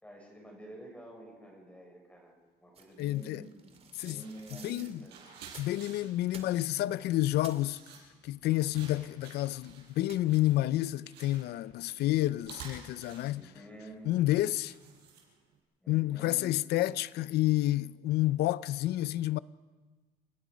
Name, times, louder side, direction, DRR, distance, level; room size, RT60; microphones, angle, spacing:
voice 1, 0.0-2.3 2.6-5.2 13.3-14.1 15.8-16.5, right 1 dB, 10° left, 6.1 m, -49 dB
sound 1, 2.8-5.9 6.3-6.9 7.2-7.7 8.9-9.3 10.1-10.4, right 5 dB, 35° right, 2.4 m, -53 dB
sound 2, 2.9-3.2 3.6-15.6, right 6 dB, 80° right, 6.2 m, -53 dB
voice 2, 3.0-3.4 4.0-4.2 4.6-5.0 5.6-7.8 8.2-13.5 14.0-14.7 15.9-19.4, left 15 dB, 75° left, 0.6 m, -29 dB
28.5 x 17.5 x 5.2 m
cardioid pair, 110°, 17 cm